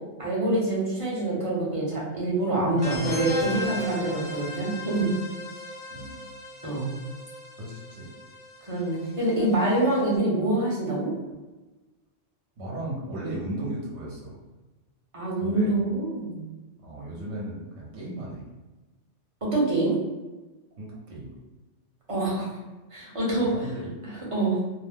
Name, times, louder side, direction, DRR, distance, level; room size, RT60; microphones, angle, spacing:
voice 1, 0.2-5.1 6.6-6.9 8.6-11.1 15.1-16.4 19.4-19.9 22.1-22.5 22.9-23.5 24.3-24.6, right 2 dB, 30° right, -5 dB, 0.8 m, -25 dB
sound 1, 2.8-10.1, left 1 dB, 40° left, 0.5 m, -37 dB
voice 2, 5.9-6.2 7.6-8.1 12.6-14.4 15.4-15.8 16.8-18.4 20.8-21.3 23.4-23.9, right 1 dB, 65° right, -4 dB, 1.2 m, -36 dB
2.7 x 2.0 x 3.4 m, 1.2 s
omnidirectional pair, 1.2 m